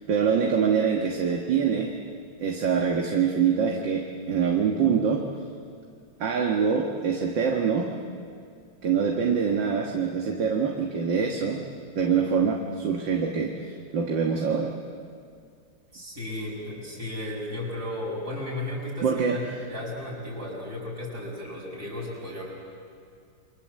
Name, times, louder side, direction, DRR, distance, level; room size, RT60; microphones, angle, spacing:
voice 1, 0.1-2.0 2.4-5.2 6.2-7.9 8.8-11.6 11.9-14.7 19.0-19.4, right 6 dB, 65° right, 1 dB, 2.3 m, -24 dB
voice 2, 15.9-22.4, left 1 dB, 50° right, -3 dB, 7.1 m, -34 dB
28.5 x 24.0 x 7.6 m, 2.3 s
omnidirectional pair, 2.1 m